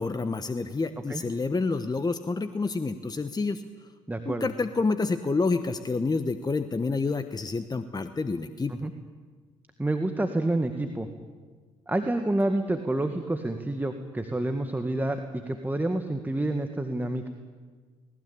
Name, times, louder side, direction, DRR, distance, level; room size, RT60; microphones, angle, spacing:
voice 1, 0.0-3.6 4.2-8.7, left 3 dB, 25° left, 10 dB, 1.2 m, -28 dB
voice 2, 4.1-4.4 8.7-8.9 9.8-11.1 11.9-17.3, right 1 dB, 10° right, 6 dB, 1.9 m, -28 dB
19.5 x 19.5 x 8.8 m, 1.5 s
hypercardioid pair, 50°, 16 cm